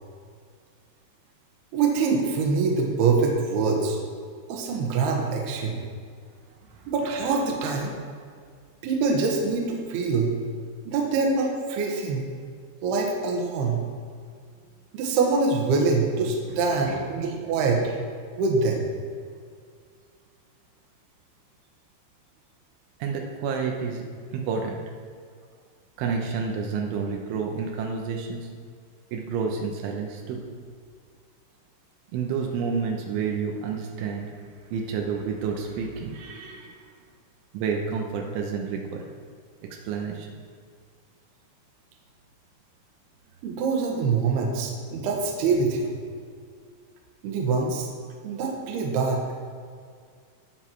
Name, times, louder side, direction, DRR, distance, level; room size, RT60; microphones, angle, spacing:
voice 1, 1.7-4.0 4.5-5.8 6.9-7.9 8.8-10.4 10.9-12.2 12.8-13.8 14.9-18.0 18.4-18.8 43.4-45.9 47.2-47.9 48.2-49.2, right 4 dB, 65° right, 1 dB, 3.2 m, -24 dB
voice 2, 23.0-24.8 26.0-28.5 29.1-30.4 32.1-34.3 34.7-36.8 37.5-39.1 39.6-40.4, right 5 dB, 85° right, 1 dB, 3.5 m, -30 dB
19.0 x 6.3 x 4.6 m, 2.1 s
omnidirectional pair, 5.4 m